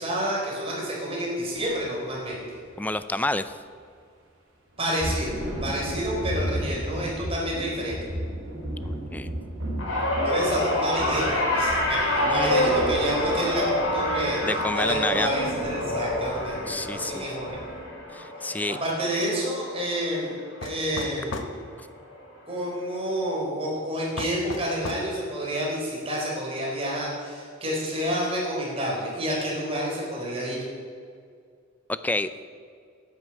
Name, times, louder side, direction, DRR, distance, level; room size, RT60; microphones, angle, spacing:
voice 1, 0.0-2.4 4.8-5.3 5.6-8.0 10.2-14.4 14.7-17.6 18.8-21.6 22.5-30.6, equal, 30° right, -3 dB, 4.0 m, -29 dB
sound 1, 1.8-2.0 2.3-2.6 4.7-17.8, equal, 70° right, 3.9 m, -35 dB
voice 2, 2.8-3.6 8.8-9.4 12.2-12.7 14.4-15.3 16.7-17.3 18.1-18.8 32.0-32.3, left 2 dB, 10° left, 12 dB, 0.4 m, -29 dB
sound 2, 9.8-20.2 20.6-21.0 22.1-22.2, left 1 dB, 80° left, 3.9 m, -27 dB
sound 3, 20.6-21.6 24.2-25.1, left 3 dB, 65° left, 1.0 m, -34 dB
10.0 x 9.5 x 7.6 m, 2.2 s
head